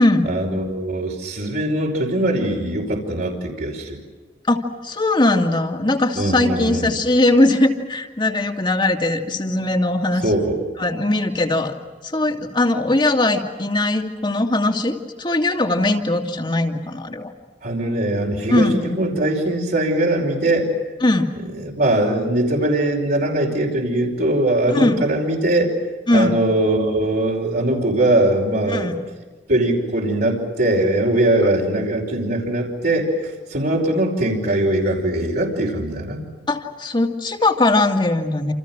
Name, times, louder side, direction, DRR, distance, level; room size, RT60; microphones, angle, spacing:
voice 1, 0.2-4.0 6.2-6.9 10.2-10.6 17.6-20.7 21.6-25.7 26.1-29.0 29.5-33.1 33.5-36.2, right 1 dB, 60° right, -2 dB, 5.3 m, -21 dB
voice 2, 4.5-10.2 10.8-11.8 12.1-17.3 18.5-18.7 21.0-21.3 24.7-25.0 26.1-26.4 28.7-29.0 36.5-38.5, left 2 dB, 25° left, 3 dB, 2.5 m, -20 dB
29.0 x 28.5 x 6.1 m, 1.3 s
head